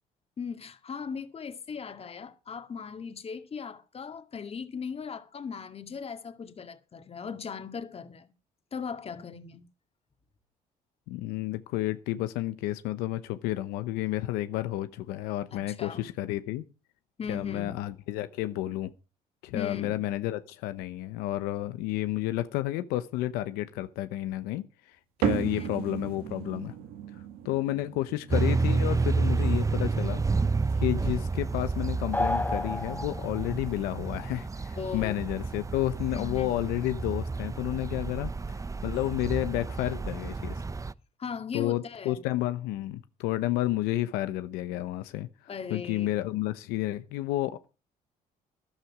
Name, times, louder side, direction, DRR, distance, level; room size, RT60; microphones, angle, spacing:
voice 1, 0.4-8.3 8.7-9.7 15.5-16.1 17.2-17.8 19.5-20.0 25.4-25.7 34.8-35.3 36.1-36.6 41.2-42.2 45.5-46.1, left 6 dB, 40° left, 2.1 m, -38 dB
voice 2, 11.1-16.6 17.3-18.9 19.4-26.7 27.1-30.2 30.8-40.6 41.5-45.3 45.7-47.7, left 15 dB, 90° left, 0.9 m, -31 dB
sound 1, 25.2-31.9, right 10 dB, 85° right, 2.1 m, -37 dB
sound 2, 28.3-40.9, right 4 dB, 20° right, 0.8 m, -30 dB
sound 3, 32.1-33.6, left 2 dB, 10° left, 1.2 m, -30 dB
13.5 x 11.5 x 4.9 m
supercardioid pair, 80°, 15 cm